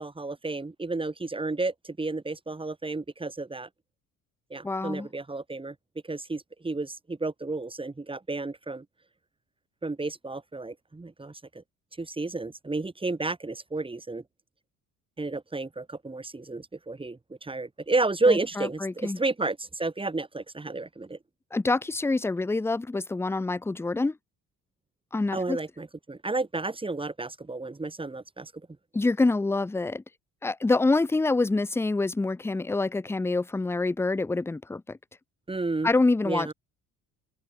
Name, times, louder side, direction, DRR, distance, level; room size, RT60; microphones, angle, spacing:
voice 1, 0.0-3.7 4.5-5.7 6.1-8.8 9.8-11.6 12.0-14.2 15.2-21.2 25.3-28.5 35.5-35.9 36.2-36.5, right 3 dB, 15° right, 3.0 m, -31 dB
voice 2, 4.6-5.1 18.3-19.2 21.5-24.2 25.1-25.6 28.9-30.0 30.4-35.0 35.8-36.5, left 3 dB, 5° left, 0.5 m, -26 dB
open air
cardioid pair, 115°, 35 cm